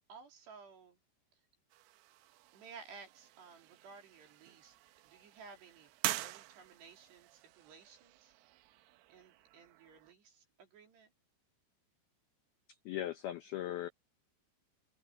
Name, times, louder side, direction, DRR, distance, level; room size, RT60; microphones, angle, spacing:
voice 1, 0.1-1.0 1.3-1.4 2.5-4.8 5.1-5.9 6.2-8.3 9.1-11.1, right 5 dB, 60° right, 5.7 m, -56 dB
sound 1, 1.7-10.1, right 17 dB, 85° right, 3.4 m, -46 dB
voice 2, 12.9-13.9, left 13 dB, 90° left, 2.1 m, -38 dB
omnidirectional pair, 5.8 m